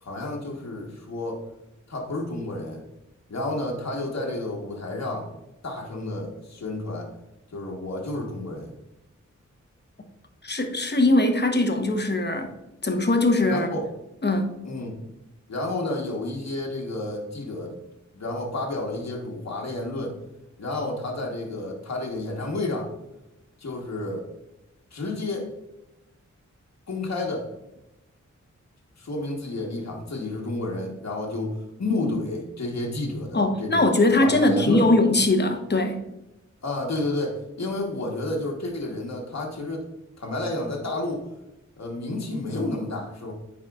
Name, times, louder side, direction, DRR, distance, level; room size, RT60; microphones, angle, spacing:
voice 1, 0.0-1.4 1.9-2.8 3.3-5.3 5.6-7.1 7.5-8.7 13.5-13.9 14.6-15.0 15.5-17.8 18.1-20.2 20.6-22.9 23.6-24.3 24.9-25.5 26.9-27.5 29.0-33.9 34.2-34.9 36.6-39.8 40.2-41.3 41.8-43.3, left 2 dB, 60° left, -1 dB, 1.4 m, -30 dB
voice 2, 10.4-12.5 12.8-13.7 14.2-14.6 33.3-36.0, left 2 dB, 35° left, 5 dB, 1.0 m, -21 dB
9.9 x 4.1 x 2.4 m, 0.90 s
wide cardioid pair, 70°, 30 cm